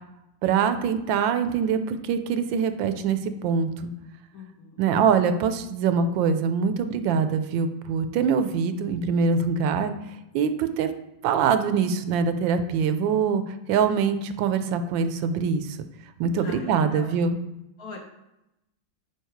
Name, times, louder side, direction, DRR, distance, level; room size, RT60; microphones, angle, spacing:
voice 1, 0.4-3.9 4.8-9.9 10.3-10.9 11.2-15.8 16.2-17.4, right 6 dB, 80° right, 9 dB, 1.3 m, -24 dB
voice 2, 4.3-4.8 16.4-17.1 17.8-18.0, left 4 dB, 60° left, 1 dB, 1.2 m, -41 dB
5.0 x 4.6 x 4.5 m, 0.89 s
omnidirectional pair, 2.0 m